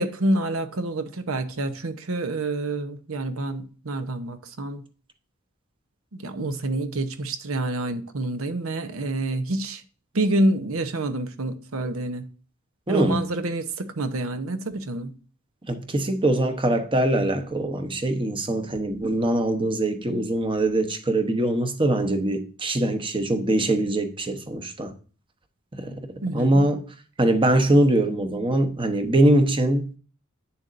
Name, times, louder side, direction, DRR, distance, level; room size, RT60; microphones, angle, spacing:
voice 1, 0.0-4.8 6.1-9.8 10.1-12.3 12.9-15.1 26.2-26.6, right 2 dB, 70° right, 0.9 m, -27 dB
voice 2, 12.9-13.3 15.7-24.9 25.7-26.0 26.3-26.9 27.2-30.0, right 1 dB, 25° right, 0.9 m, -22 dB
9.4 x 7.0 x 2.6 m
head